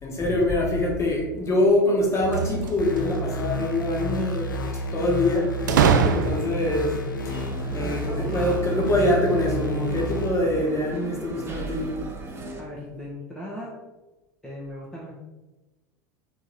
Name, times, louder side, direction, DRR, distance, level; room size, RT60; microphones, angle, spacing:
voice 1, 0.0-4.5 4.9-5.6 5.9-7.0 7.7-11.9, left 1 dB, 25° left, -2 dB, 1.4 m, -24 dB
sound 1, 2.2-3.2 5.7-6.7, right 6 dB, 70° right, 0.4 m, -22 dB
sound 2, 2.8-10.3, equal, 80° left, 0.6 m, -30 dB
sound 3, 7.2-12.6, right 2 dB, 25° right, 0.8 m, -37 dB
voice 2, 7.7-8.0 12.6-13.8 14.4-15.1, left 1 dB, 5° left, -6 dB, 1.1 m, -38 dB
3.8 x 3.1 x 4.0 m, 1.1 s
figure-of-eight pair, 80°, 11 cm